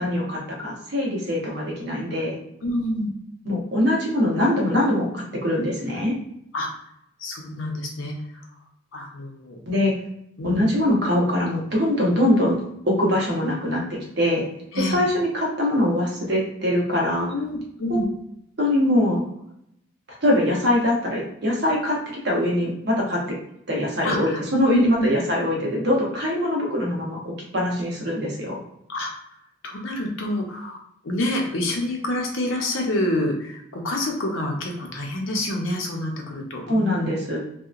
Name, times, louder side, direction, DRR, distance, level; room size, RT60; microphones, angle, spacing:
voice 1, 0.0-2.4 3.4-6.1 9.7-9.9 10.4-12.6 12.8-13.8 14.2-14.4 14.8-17.3 17.9-18.1 18.6-19.2 20.2-22.0 22.2-23.3 23.7-28.6 36.7-37.4, left 1 dB, 55° right, -2 dB, 0.8 m, -22 dB
voice 2, 2.6-3.1 6.5-6.7 7.2-8.1 8.9-9.6 10.4-10.6 14.7-15.0 17.3-18.1 24.0-25.2 28.9-29.1 29.6-30.8 31.0-37.2, left 1 dB, 75° left, 1 dB, 0.6 m, -27 dB
2.8 x 2.1 x 2.4 m, 0.76 s
head